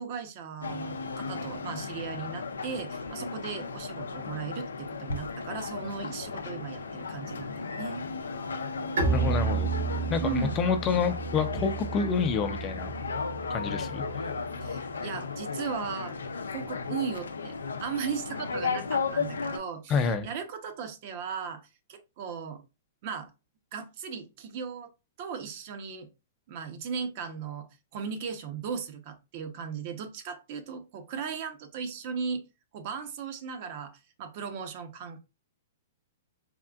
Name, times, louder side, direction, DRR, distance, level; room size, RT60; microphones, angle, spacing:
voice 1, 0.0-8.0 10.2-10.6 14.6-16.2 16.5-17.5 17.8-22.6 23.0-23.3 23.7-24.9 25.2-26.1 26.5-32.4 32.7-35.2, right 6 dB, 50° right, 0.7 m, -37 dB
sound 1, 0.6-19.6, left 4 dB, 90° left, 0.4 m, -35 dB
Bowed string instrument, 9.0-14.6, right 5 dB, 80° right, 1.5 m, -32 dB
voice 2, 9.1-9.7 10.1-12.9 13.5-14.3 19.9-20.3, left 5 dB, 30° left, 0.5 m, -28 dB
3.5 x 2.4 x 2.3 m
hypercardioid pair, 125°, 0 cm